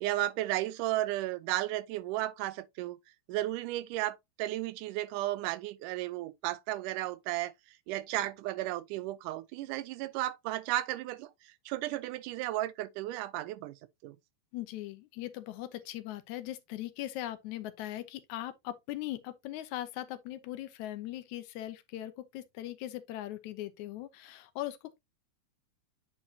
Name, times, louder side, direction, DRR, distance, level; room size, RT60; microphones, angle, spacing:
voice 1, 0.0-3.0 3.3-7.5 7.9-13.8 14.0-14.2, right 15 dB, 90° right, 2.1 m, -34 dB
voice 2, 14.5-25.0, left 14 dB, 75° left, 1.9 m, -40 dB
8.8 x 4.4 x 2.7 m
omnidirectional pair, 3.6 m